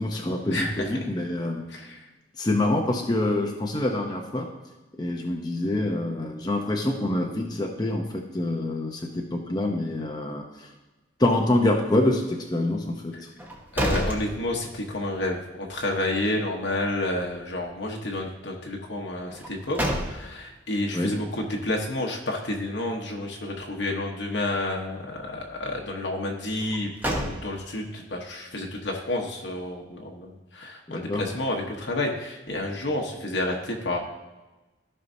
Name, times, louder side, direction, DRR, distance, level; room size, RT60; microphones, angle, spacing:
voice 1, 0.0-1.6 2.4-4.5 5.0-10.7 11.2-13.3 20.9-21.1 30.9-31.3, left 1 dB, 20° left, 0 dB, 0.7 m, -26 dB
voice 2, 0.5-0.9 1.7-2.0 13.7-26.9 27.2-34.0, left 1 dB, 65° left, 0 dB, 1.1 m, -30 dB
sound 1, 13.4-15.0 15.4-15.5 19.3-20.6 26.6-27.9, equal, 10° right, 0.9 m, -30 dB
14.5 x 5.6 x 2.7 m, 1.1 s
head